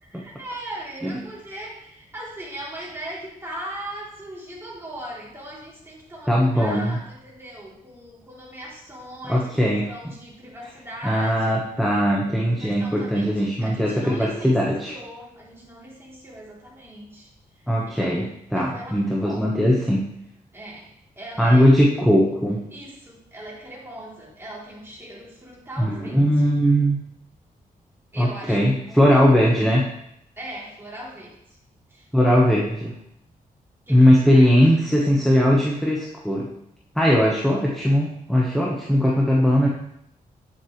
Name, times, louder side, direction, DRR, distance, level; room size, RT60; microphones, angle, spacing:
voice 1, 0.0-11.6 12.5-18.2 18.5-19.6 20.5-20.9 21.2-21.7 22.7-26.5 28.1-29.3 30.4-31.6 31.9-32.1 33.9-34.5, right 1 dB, 15° right, -6 dB, 3.4 m, -39 dB
voice 2, 6.3-7.0 9.3-9.9 11.0-14.9 17.7-20.1 21.4-22.7 25.8-27.0 28.2-29.9 32.1-33.0 33.9-36.5 36.9-39.7, equal, ahead, -3 dB, 1.3 m, -19 dB
9.1 x 7.3 x 3.3 m, 0.76 s
cardioid pair, 95°, 15 cm